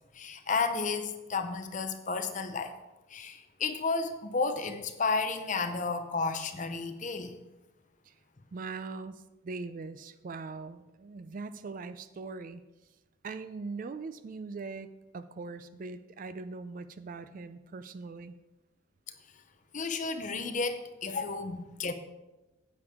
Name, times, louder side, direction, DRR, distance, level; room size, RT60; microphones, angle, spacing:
voice 1, 0.1-2.7 3.1-7.4 19.7-21.9, left 4 dB, 35° left, 8 dB, 0.7 m, -32 dB
voice 2, 8.5-12.6 13.2-18.3, right 4 dB, 40° right, 12 dB, 0.3 m, -41 dB
9.6 x 8.4 x 3.6 m, 1.1 s
head